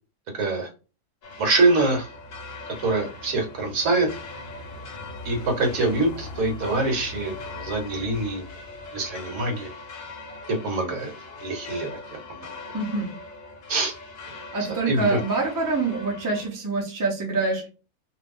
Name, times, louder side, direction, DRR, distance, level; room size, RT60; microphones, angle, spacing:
voice 1, 0.3-0.7 1.4-2.1 2.8-4.1 5.2-8.4 8.9-9.7 10.5-11.1 11.4-12.5 13.7-13.9 14.7-15.2, right 2 dB, 65° right, 3 dB, 1.3 m, -24 dB
sound 1, 1.2-16.5, left 3 dB, 50° left, 0.7 m, -40 dB
voice 2, 12.7-13.1 14.5-17.7, right 3 dB, 20° right, -1 dB, 0.5 m, -26 dB
2.5 x 2.4 x 3.6 m, 0.33 s
omnidirectional pair, 1.6 m